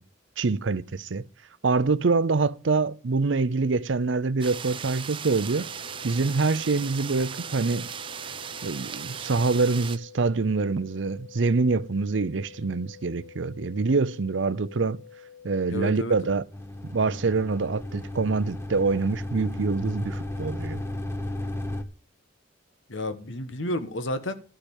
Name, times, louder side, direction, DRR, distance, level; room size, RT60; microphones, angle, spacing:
voice 1, 0.4-1.2 1.6-5.7 6.0-7.9 8.6-15.0 15.4-16.4 16.9-20.8, right 4 dB, 75° right, 0.6 m, -25 dB
sound 1, 4.4-10.0, right 7 dB, 25° right, 0.4 m, -37 dB
sound 2, 5.6-15.6, left 8 dB, 55° left, 1.6 m, -49 dB
voice 2, 15.7-16.2 22.9-24.3, left 1 dB, 75° left, 1.2 m, -31 dB
sound 3, 16.5-21.8, left 1 dB, 15° left, 1.0 m, -34 dB
12.0 x 5.0 x 8.1 m
head